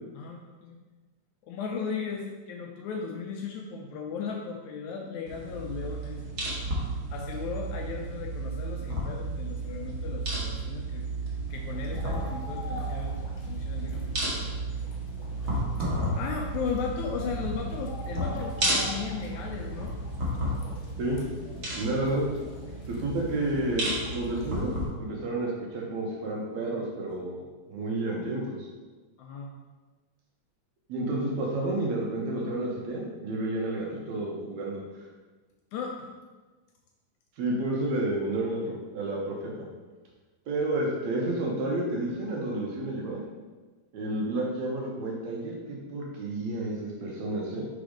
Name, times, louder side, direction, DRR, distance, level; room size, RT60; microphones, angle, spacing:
voice 1, 0.1-0.8 1.4-6.2 7.1-11.1 11.5-13.2 13.4-14.2 15.8-20.0 29.2-29.5 35.7-36.1, left 5 dB, 80° left, 1 dB, 1.8 m, -36 dB
sound 1, 5.3-24.8, right 2 dB, 45° right, 1.4 m, -33 dB
sound 2, 11.5-24.7, left 2 dB, 65° left, 2.1 m, -46 dB
voice 2, 21.7-22.3 22.9-28.7 30.9-34.8 37.4-39.5 40.5-43.2 43.9-47.6, right 2 dB, 70° right, -2 dB, 1.9 m, -30 dB
5.0 x 4.0 x 5.0 m, 1.3 s
omnidirectional pair, 3.7 m